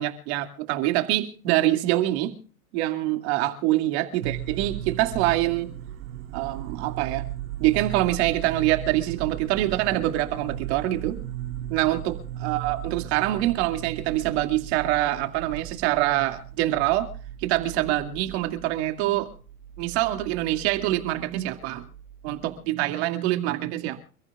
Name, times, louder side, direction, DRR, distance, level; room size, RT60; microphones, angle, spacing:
voice 1, 0.0-2.4 2.7-5.7 6.3-7.3 7.6-11.2 11.7-17.1 17.4-19.3 19.8-21.9 22.2-24.0, right 15 dB, 50° right, 2.4 m, -25 dB
sound 1, 4.2-22.6, right 12 dB, 75° right, 3.5 m, -37 dB
29.0 x 14.5 x 2.4 m
supercardioid pair, 150°, 43 cm